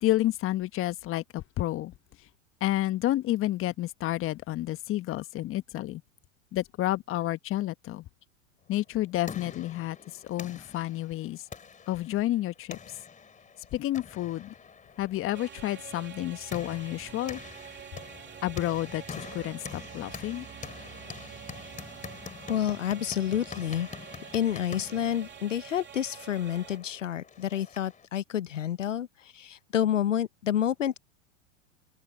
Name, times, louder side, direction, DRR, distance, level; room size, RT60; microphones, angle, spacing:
voice 1, 0.0-1.9 2.6-6.0 6.5-8.0 8.7-10.0 10.2-11.4 11.9-12.8 13.7-14.5 15.0-17.4 18.4-20.4, left 15 dB, 35° left, 1.4 m, -30 dB
sound 1, 8.8-28.1, left 6 dB, 20° left, 3.9 m, -46 dB
sound 2, 15.3-26.8, right 9 dB, 30° right, 3.0 m, -46 dB
voice 2, 22.5-23.9 24.3-31.0, left 10 dB, 80° left, 1.1 m, -29 dB
open air
hypercardioid pair, 95°, 37 cm